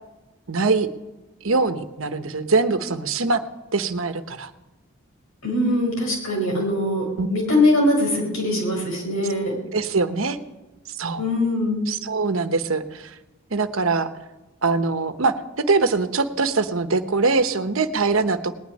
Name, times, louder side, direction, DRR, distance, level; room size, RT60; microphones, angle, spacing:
voice 1, 0.5-0.9 1.4-3.4 3.7-4.5 7.2-7.3 9.7-10.4 11.0-11.2 11.9-13.1 13.5-14.1 14.6-15.3 15.7-18.5, right 4 dB, 80° right, 10 dB, 1.0 m, -22 dB
voice 2, 5.4-9.6 11.2-11.8, left 1 dB, 80° left, 0 dB, 5.2 m, -22 dB
19.0 x 6.3 x 9.8 m, 1.1 s
head